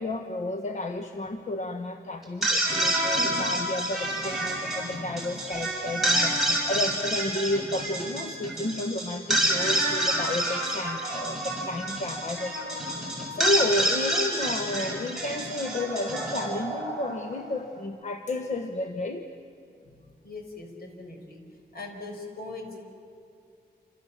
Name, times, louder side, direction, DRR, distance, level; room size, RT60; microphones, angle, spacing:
voice 1, 0.0-19.3, left 2 dB, 45° left, 6 dB, 1.3 m, -32 dB
sound 1, 2.2-17.5, right 1 dB, ahead, 7.0 m, -28 dB
voice 2, 19.8-21.4 21.7-22.8, left 3 dB, 65° left, 3 dB, 5.4 m, -41 dB
28.0 x 27.5 x 7.4 m, 2.4 s
wide cardioid pair, 130°, 17 cm